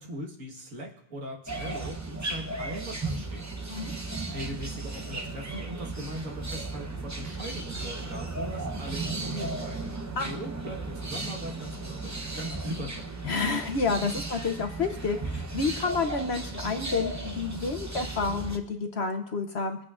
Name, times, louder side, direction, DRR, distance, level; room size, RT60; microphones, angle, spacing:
voice 1, 0.0-3.5 4.3-13.2, equal, 65° right, 0 dB, 1.9 m, -40 dB
sound 1, 1.5-18.6, right 3 dB, 20° right, 0.5 m, -35 dB
voice 2, 13.2-19.8, left 4 dB, 55° left, 6 dB, 0.9 m, -29 dB
24.5 x 8.4 x 2.5 m, 0.74 s
omnidirectional pair, 1.5 m